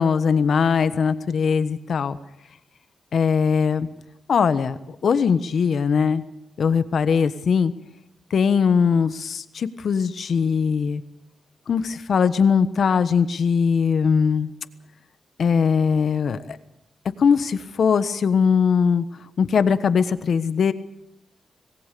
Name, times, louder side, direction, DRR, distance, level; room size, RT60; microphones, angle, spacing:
voice 1, 0.0-2.2 3.1-3.9 4.3-4.8 5.0-6.2 6.6-7.7 8.3-11.0 11.7-14.5 15.4-16.4 17.2-19.1 19.4-20.7, left 6 dB, 55° left, 12 dB, 1.2 m, -20 dB
26.0 x 19.5 x 6.8 m, 0.87 s
wide cardioid pair, 145°, 0 cm